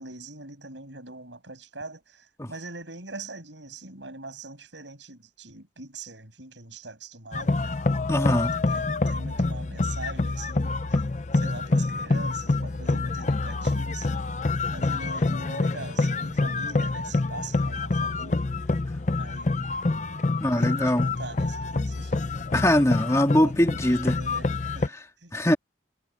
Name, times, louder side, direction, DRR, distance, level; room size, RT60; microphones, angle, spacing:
voice 1, 0.0-7.7 8.7-11.0 11.3-14.3 14.7-18.7 19.2-19.8 20.5-25.4, right 3 dB, 80° right, 7.1 m, -43 dB
sound 1, 7.3-24.9, left 3 dB, 40° left, 0.5 m, -27 dB
voice 2, 8.1-8.6 20.4-21.1 22.5-24.2 25.3-25.6, left 1 dB, 15° left, 2.0 m, -22 dB
head